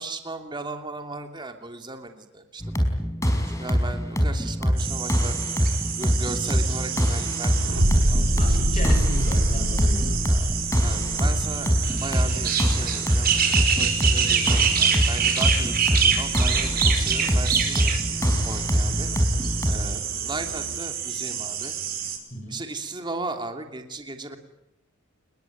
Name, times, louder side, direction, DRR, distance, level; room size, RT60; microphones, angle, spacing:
voice 1, 0.0-2.6 3.5-5.4 5.8-8.8 10.3-11.7 12.0-17.9 18.4-19.1 19.7-21.7 22.5-24.4, right 2 dB, 20° right, 5 dB, 3.0 m, -36 dB
sound 1, 2.6-19.7, equal, 15° left, 5.3 m, -24 dB
sound 2, 4.8-22.2, right 7 dB, 45° right, 5.2 m, -27 dB
sound 3, 6.5-20.8, equal, 75° right, 3.1 m, -29 dB
voice 2, 8.4-10.2 22.3-22.6, equal, 35° left, 6 dB, 6.2 m, -33 dB
28.0 x 21.5 x 9.4 m, 0.85 s
head